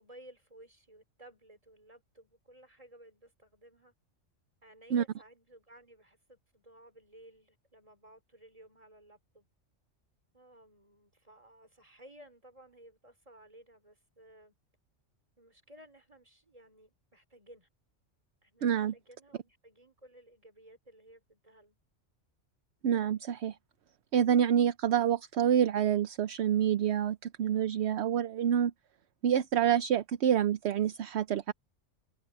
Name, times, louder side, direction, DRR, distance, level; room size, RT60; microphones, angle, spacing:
voice 1, 0.0-3.9 4.6-9.5 10.3-14.5 15.4-17.7 18.4-21.8, right 1 dB, 30° right, 4.2 m, -57 dB
voice 2, 18.6-18.9 22.8-23.6 24.1-28.7 29.2-31.5, right 9 dB, 65° right, 0.9 m, -27 dB
omnidirectional pair, 1.3 m